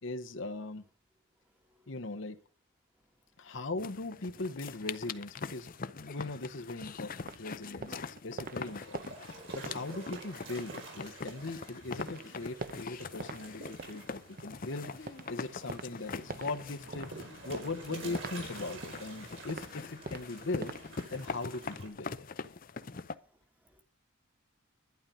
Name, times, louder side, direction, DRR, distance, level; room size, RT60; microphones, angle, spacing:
voice 1, 0.0-0.8 1.9-2.4 3.4-20.7 21.1-22.3, left 2 dB, 60° left, 1.0 m, -40 dB
voice 2, 1.5-1.9 9.3-9.6 22.9-23.8, left 1 dB, 10° right, 1.5 m, -65 dB
sound 1, 3.8-23.2, left 4 dB, 40° left, 0.6 m, -43 dB
sound 2, 7.2-11.6 11.9-13.4 13.7-21.4, right 3 dB, 45° right, 0.8 m, -46 dB
sound 3, 8.4-21.9, right 3 dB, 65° right, 4.8 m, -50 dB
11.5 x 10.5 x 5.5 m
head